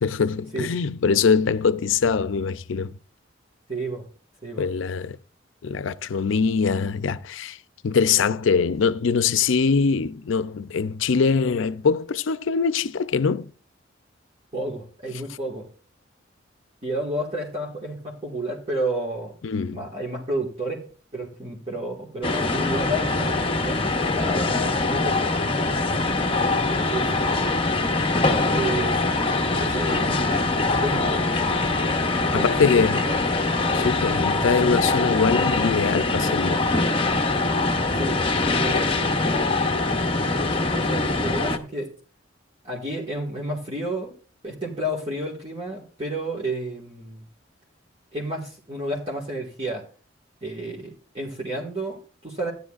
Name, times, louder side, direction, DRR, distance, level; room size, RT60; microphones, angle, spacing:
voice 1, 0.0-3.0 4.6-5.2 5.6-7.6 7.8-13.5 19.4-19.8 32.3-33.0 33.7-36.6, left 5 dB, 85° left, 0.5 m, -23 dB
voice 2, 3.7-4.1 4.4-4.7 14.5-15.7 16.8-19.3 19.7-20.9 21.1-26.1 26.4-27.3 28.2-29.2 29.6-31.3 32.1-33.3 38.0-39.9 40.3-41.9 42.6-44.1 44.4-47.3 48.1-49.8 50.4-52.5, right 1 dB, 30° right, 1.7 m, -31 dB
sound 1, 22.2-41.6, left 3 dB, 30° left, 0.8 m, -23 dB
15.0 x 10.0 x 2.4 m
head